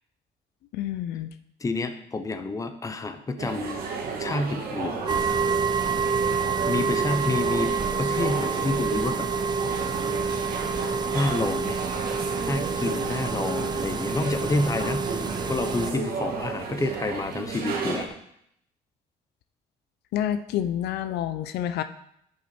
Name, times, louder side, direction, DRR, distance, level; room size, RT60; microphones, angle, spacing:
voice 1, 0.7-1.3 20.1-21.8, left 11 dB, 75° left, 11 dB, 0.6 m, -28 dB
voice 2, 1.6-3.8 4.2-5.1 6.7-7.7 8.0-9.3 11.1-11.8 12.5-18.1, left 2 dB, 20° left, 8 dB, 0.9 m, -29 dB
sound 1, 3.4-18.1, right 4 dB, 65° right, 1.8 m, -33 dB
sound 2, 5.1-15.9, right 5 dB, 25° right, 0.6 m, -27 dB
10.5 x 6.1 x 4.4 m, 0.73 s
cardioid pair, 110°, 17 cm